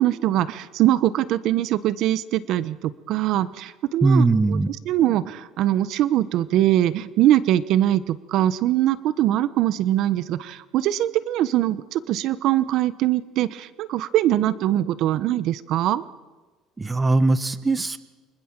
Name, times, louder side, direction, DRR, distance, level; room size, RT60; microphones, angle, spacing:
voice 1, 0.0-4.6 4.9-16.0, right 13 dB, 60° right, 15 dB, 1.1 m, -22 dB
voice 2, 4.0-4.7 16.8-18.0, right 3 dB, 15° right, 13 dB, 1.2 m, -20 dB
29.0 x 24.5 x 7.5 m, 1.3 s
cardioid pair, 130°, 0 cm